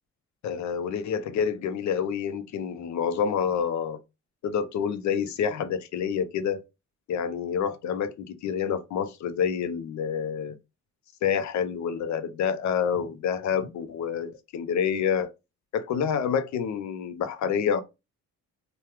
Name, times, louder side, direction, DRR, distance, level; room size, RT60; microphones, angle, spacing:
voice 1, 0.4-4.0 4.4-6.6 7.1-10.6 11.2-15.3 15.7-17.8, left 7 dB, 70° left, 0.6 m, -28 dB
3.1 x 2.3 x 3.3 m
cardioid pair, 90°, 30 cm